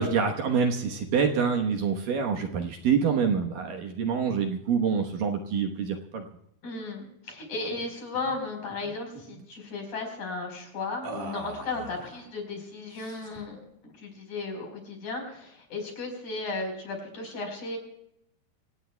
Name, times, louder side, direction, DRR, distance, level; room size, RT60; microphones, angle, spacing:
voice 1, 0.0-6.2, right 6 dB, 65° right, 3 dB, 2.6 m, -26 dB
voice 2, 6.6-17.8, left 3 dB, 45° left, 3 dB, 5.7 m, -35 dB
sound 1, 7.7-7.9 8.1-8.4 8.7-9.5 11.0-12.3 12.9-13.5, right 3 dB, 50° right, 2.6 m, -42 dB
25.5 x 18.0 x 2.3 m, 0.76 s
omnidirectional pair, 4.6 m